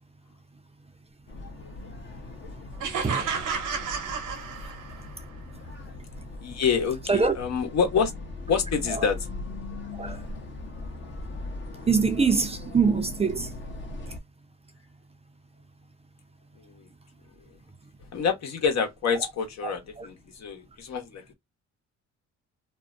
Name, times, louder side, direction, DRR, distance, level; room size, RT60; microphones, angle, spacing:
sound 1, 1.3-14.2, left 2 dB, 40° left, 0.8 m, -39 dB
sound 2, 2.8-5.1, right 6 dB, 80° right, 1.0 m, -31 dB
voice 1, 6.4-8.1 8.5-9.2 16.6-16.9 18.1-21.3, left 6 dB, 60° left, 1.0 m, -27 dB
voice 2, 11.9-13.5 19.6-19.7 20.0-20.1, right 5 dB, 20° right, 0.5 m, -23 dB
2.5 x 2.1 x 2.4 m
cardioid pair, 90°, 30 cm